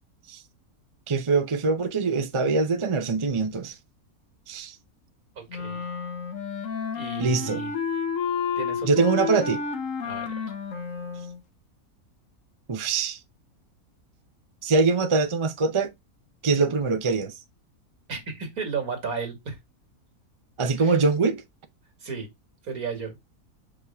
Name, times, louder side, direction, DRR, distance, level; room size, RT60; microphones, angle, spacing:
voice 1, 1.1-3.7 4.5-4.7 7.2-7.6 8.8-9.6 12.7-13.2 14.6-15.9 16.4-17.3 20.6-21.4, right 4 dB, 30° right, 0.6 m, -23 dB
voice 2, 5.3-5.8 6.9-7.7 8.6-8.9 10.0-10.5 18.1-19.6 20.8-21.0 22.0-22.3 22.6-23.2, right 5 dB, 75° right, 2.5 m, -34 dB
Wind instrument woodwind instrument, 5.5-11.4, left 6 dB, 60° left, 1.3 m, -31 dB
6.4 x 5.3 x 3.5 m
omnidirectional pair, 1.6 m